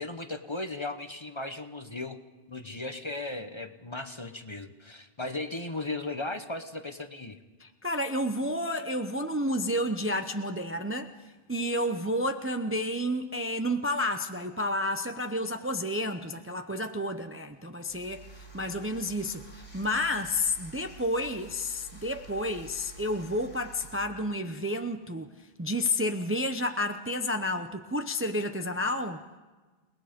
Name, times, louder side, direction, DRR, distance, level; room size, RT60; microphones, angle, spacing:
voice 1, 0.0-2.2 2.5-7.4, left 2 dB, 30° left, 8 dB, 0.9 m, -36 dB
voice 2, 7.6-11.1 11.5-18.2 18.5-19.5 19.7-25.3 25.6-29.2, left 1 dB, 15° right, 7 dB, 0.6 m, -30 dB
sound 1, 17.9-24.0, right 4 dB, 85° left, 4.2 m, -49 dB
29.0 x 19.0 x 5.2 m, 1.3 s
omnidirectional pair, 1.1 m